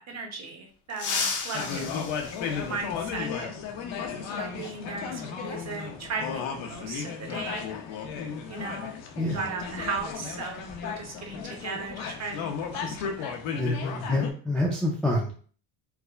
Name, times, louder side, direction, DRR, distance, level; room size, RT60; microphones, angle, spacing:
voice 1, 0.0-2.0 2.6-3.5 4.3-7.7 8.5-8.9 9.3-13.3, right 4 dB, 35° right, 2 dB, 0.9 m, -37 dB
sound 1, 0.9-3.3 5.0-5.1 6.3-6.4 8.0-8.2 8.5-8.7 9.2-11.4 11.7-11.9 12.3-12.8, left 5 dB, 40° left, 0.7 m, -35 dB
sound 2, 1.5-14.3, left 6 dB, 70° left, 0.8 m, -34 dB
voice 2, 13.6-15.3, left 1 dB, ahead, -3 dB, 0.5 m, -27 dB
4.7 x 2.1 x 2.4 m, 0.42 s
cardioid pair, 120°, 48 cm